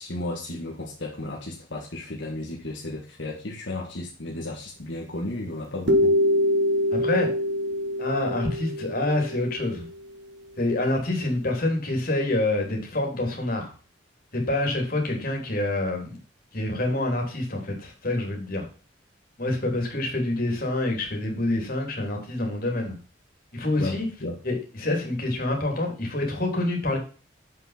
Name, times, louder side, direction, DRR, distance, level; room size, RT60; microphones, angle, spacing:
voice 1, 0.0-6.2 23.7-24.4, left 2 dB, 75° left, -1 dB, 1.6 m, -34 dB
sound 1, 5.9-9.9, left 1 dB, 70° right, 1.9 m, -24 dB
voice 2, 6.9-7.3 8.0-9.8 10.6-13.7 14.3-16.1 16.5-18.6 19.4-22.9 23.5-24.1 24.4-27.0, left 2 dB, 50° left, 1 dB, 3.3 m, -26 dB
7.5 x 5.9 x 5.8 m, 0.36 s
head